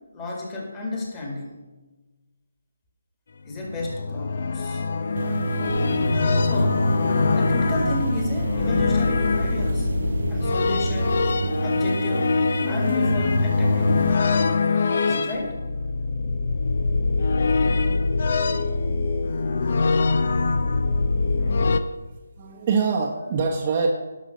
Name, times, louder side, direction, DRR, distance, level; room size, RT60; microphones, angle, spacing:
voice 1, 0.1-1.6 3.5-4.8 6.4-6.9 7.3-9.9 10.3-11.2 11.6-12.4 12.7-14.2 15.0-15.6, left 2 dB, 15° left, -2 dB, 2.1 m, -31 dB
sound 1, 3.5-21.8, left 4 dB, 50° left, 0.6 m, -23 dB
sound 2, 5.2-14.2, right 4 dB, 55° right, 0.3 m, -29 dB
voice 2, 19.9-20.3 20.7-20.9 21.2-21.7 22.4-23.9, right 5 dB, 30° right, -1 dB, 0.9 m, -26 dB
11.5 x 6.1 x 5.2 m, 1.2 s
figure-of-eight pair, 160°, 0 cm